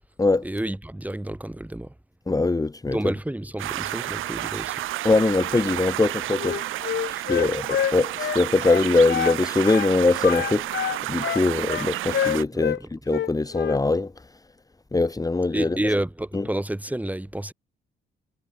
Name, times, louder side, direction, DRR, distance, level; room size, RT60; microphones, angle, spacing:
voice 1, 0.4-1.9 2.9-4.8 7.3-7.5 12.5-12.9 15.5-17.5, right 1 dB, 10° right, 6.5 m, -30 dB
voice 2, 2.3-3.0 5.0-6.6 7.1-7.6 7.9-14.1 14.9-15.8 16.3-16.4, left 3 dB, 20° left, 2.4 m, -22 dB
sound 1, 3.6-12.4, right 15 dB, 90° right, 6.2 m, -31 dB
Wind instrument woodwind instrument, 6.4-9.4 9.6-9.9 10.2-12.8 13.1-13.8, left 9 dB, 65° left, 7.9 m, -27 dB
cardioid pair, 90°, 20 cm